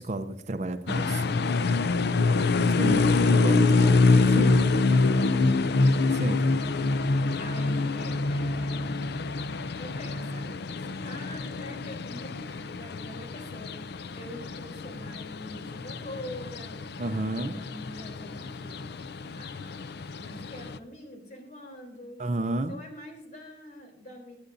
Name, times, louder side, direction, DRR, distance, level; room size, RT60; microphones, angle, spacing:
voice 1, 0.0-1.5 2.8-4.0 4.3-4.6 6.1-6.4 17.0-17.6 22.2-22.7, right 2 dB, 40° right, 8 dB, 0.6 m, -31 dB
sound 1, 0.9-20.8, left 3 dB, 65° left, 0.5 m, -26 dB
voice 2, 1.9-2.6 6.2-6.6 7.4-9.1 9.8-16.9 17.3-19.8 20.2-22.2 22.7-24.4, left 1 dB, 45° left, 2 dB, 3.4 m, -44 dB
22.5 x 9.6 x 2.7 m, 0.79 s
head